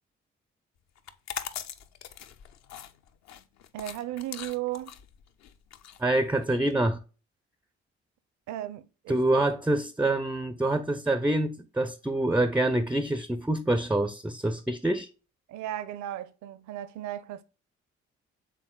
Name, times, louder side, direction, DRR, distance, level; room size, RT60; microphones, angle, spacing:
sound 1, 1.0-6.7, left 9 dB, 55° left, 0.5 m, -41 dB
voice 1, 3.7-5.0 8.5-9.4 15.5-17.4, right 13 dB, 60° right, 0.5 m, -36 dB
voice 2, 6.0-7.0 9.1-15.1, right 1 dB, 5° right, 0.4 m, -26 dB
5.9 x 3.6 x 2.2 m
hypercardioid pair, 45°, 33 cm